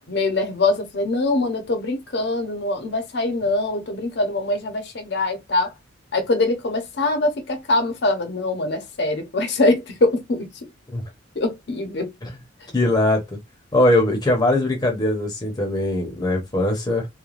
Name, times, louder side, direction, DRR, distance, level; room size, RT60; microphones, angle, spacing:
voice 1, 0.0-5.7 6.1-10.5 11.4-12.1, left 2 dB, 60° left, 0.7 m, -23 dB
voice 2, 12.7-13.2 13.7-17.1, left 1 dB, 20° left, 0.7 m, -20 dB
3.1 x 2.2 x 2.4 m
head